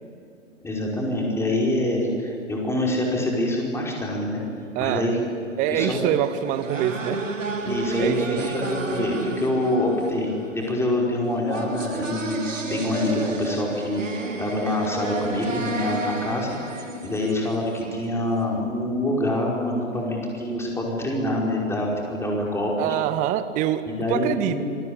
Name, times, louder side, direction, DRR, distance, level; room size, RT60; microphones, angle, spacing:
voice 1, 0.6-4.4 4.8-5.2 5.7-6.0 7.6-14.0 14.4-16.5 16.8-23.0 23.9-24.6, left 1 dB, 5° left, -2 dB, 5.3 m, -25 dB
voice 2, 4.7-5.1 5.6-7.2 8.0-8.5 22.8-24.6, right 11 dB, 20° right, 13 dB, 0.9 m, -25 dB
sound 1, 6.2-18.1, right 3 dB, 75° right, 2.8 m, -32 dB
27.0 x 22.0 x 8.8 m, 2.7 s
figure-of-eight pair, 115°, 39 cm